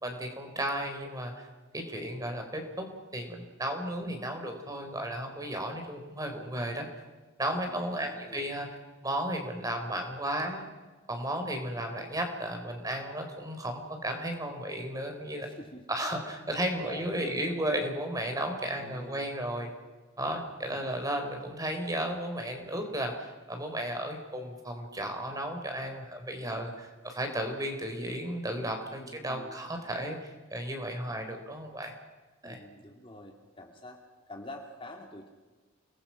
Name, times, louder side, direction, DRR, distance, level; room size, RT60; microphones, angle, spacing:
voice 1, 0.0-1.5 1.7-2.9 3.1-6.9 7.4-8.7 9.0-10.6 11.1-15.5 15.9-19.7 20.2-26.7 27.0-31.9 32.4-32.6, right 1 dB, 20° right, 4 dB, 4.2 m, -34 dB
voice 2, 7.7-8.4 15.4-15.9 16.8-17.6 18.8-19.3 20.7-21.0 26.4-26.7 29.0-29.6 32.4-35.3, left 1 dB, 25° left, 2 dB, 2.6 m, -47 dB
29.5 x 21.0 x 6.0 m, 1.3 s
head